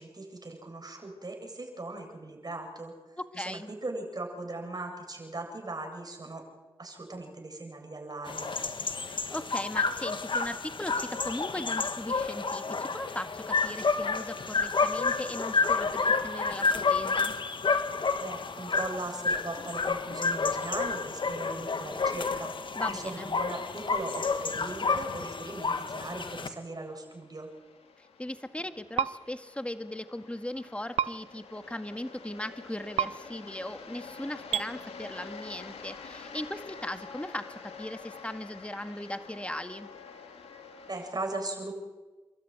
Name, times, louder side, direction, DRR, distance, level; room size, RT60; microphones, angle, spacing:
voice 1, 0.0-2.9 3.3-6.4 6.8-8.5 18.2-22.5 22.9-27.5 40.9-41.7, right 2 dB, 40° right, 3 dB, 8.0 m, -39 dB
voice 2, 3.2-3.7 9.1-17.3 22.7-23.3 28.0-39.9, left 1 dB, 10° left, 9 dB, 2.1 m, -38 dB
sound 1, 8.3-26.5, left 4 dB, 55° left, 1.8 m, -30 dB
sound 2, 25.1-41.1, left 5 dB, 80° left, 2.7 m, -48 dB
sound 3, 29.0-29.1 31.0-31.1 33.0-33.1 34.5-34.7, right 9 dB, 85° right, 0.7 m, -26 dB
30.0 x 13.0 x 9.7 m, 1.2 s
supercardioid pair, 40°, 10 cm